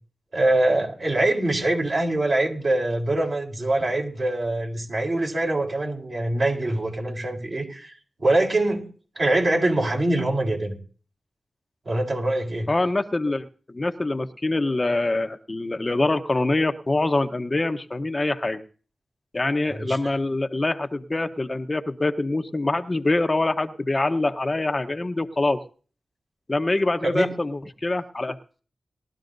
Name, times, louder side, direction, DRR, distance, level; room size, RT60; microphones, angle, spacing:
voice 1, 0.3-7.9 8.2-8.9 9.2-10.8 11.9-12.7 19.7-20.0 27.0-27.3, right 2 dB, 55° right, -1 dB, 3.6 m, -23 dB
voice 2, 12.7-18.6 19.3-25.6 26.5-28.4, left 2 dB, 35° left, 7 dB, 0.9 m, -25 dB
20.0 x 12.5 x 2.6 m, 0.40 s
cardioid pair, 50°, 0 cm